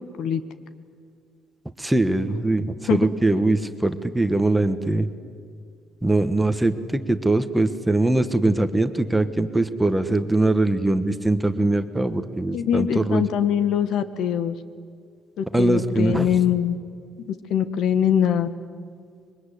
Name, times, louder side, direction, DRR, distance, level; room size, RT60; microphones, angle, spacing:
voice 1, 1.8-5.1 6.0-13.2 15.5-16.3, right 2 dB, 5° right, 9 dB, 1.3 m, -22 dB
voice 2, 12.5-14.5 15.4-16.8 17.5-18.5, left 9 dB, 65° left, 12 dB, 1.7 m, -22 dB
25.5 x 23.0 x 10.0 m, 2.3 s
cardioid pair, 150°, 0 cm